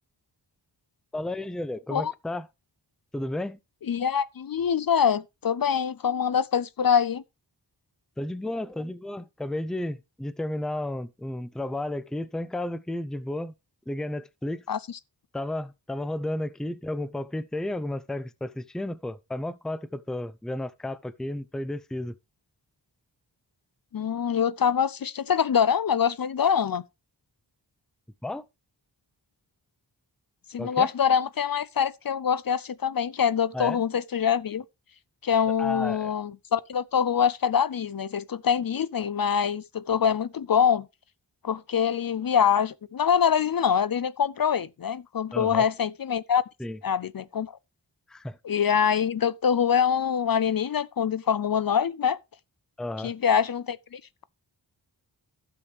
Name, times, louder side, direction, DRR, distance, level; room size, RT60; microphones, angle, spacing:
voice 1, 1.1-2.5 3.1-3.6 8.2-13.5 13.9-14.6 15.3-22.1 28.2-28.5 30.6-30.9 33.5-33.8 35.6-36.1 45.3-45.7 46.6-46.8 48.1-48.4 52.8-53.1, left 1 dB, ahead, 0.5 m, -32 dB
voice 2, 3.9-7.2 14.7-14.8 23.9-26.8 30.5-34.6 35.2-40.9 41.4-46.4 46.8-47.5 48.4-52.2 53.0-54.2, left 7 dB, 55° left, 0.5 m, -24 dB
11.5 x 6.9 x 3.2 m
wide cardioid pair, 50°, 43 cm